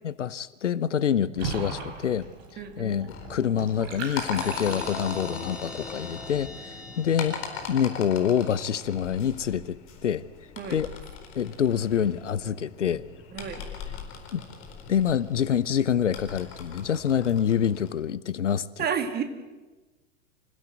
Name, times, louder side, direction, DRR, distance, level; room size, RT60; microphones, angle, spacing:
voice 1, 0.0-2.3 2.5-7.4 7.7-9.8 10.0-10.2 10.7-10.9 11.3-13.0 14.3-14.4 14.9-18.8, left 8 dB, 70° left, 18 dB, 0.8 m, -26 dB
Water / Bathtub (filling or washing), 1.4-5.4, right 4 dB, 40° right, 5.0 m, -38 dB
voice 2, 2.6-3.0 10.6-10.8 13.3-13.6 18.8-19.2, right 7 dB, 25° right, 8 dB, 2.3 m, -30 dB
sound 1, 3.1-17.9, left 6 dB, 35° left, 4.4 m, -40 dB
sound 2, 4.4-7.9, equal, ahead, 3.0 m, -41 dB
26.5 x 16.0 x 8.1 m, 1.2 s
figure-of-eight pair, 95°, 37 cm